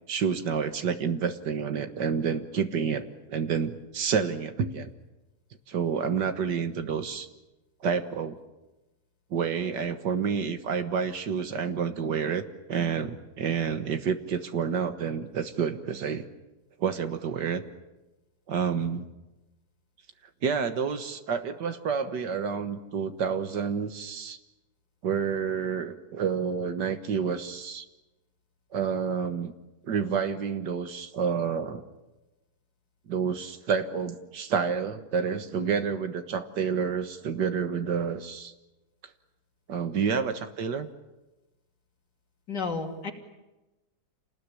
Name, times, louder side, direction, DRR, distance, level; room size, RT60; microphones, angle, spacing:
voice 1, 0.1-4.9 5.7-7.3 7.8-8.4 9.3-16.3 16.8-17.6 18.5-19.1 20.4-24.4 25.0-27.9 28.7-29.5 29.8-31.8 33.1-38.5 39.7-40.9, right 6 dB, 80° right, 8 dB, 2.0 m, -29 dB
voice 2, 42.5-43.1, left 4 dB, 80° left, 1 dB, 3.4 m, -31 dB
28.5 x 19.5 x 9.7 m, 1.1 s
omnidirectional pair, 1.8 m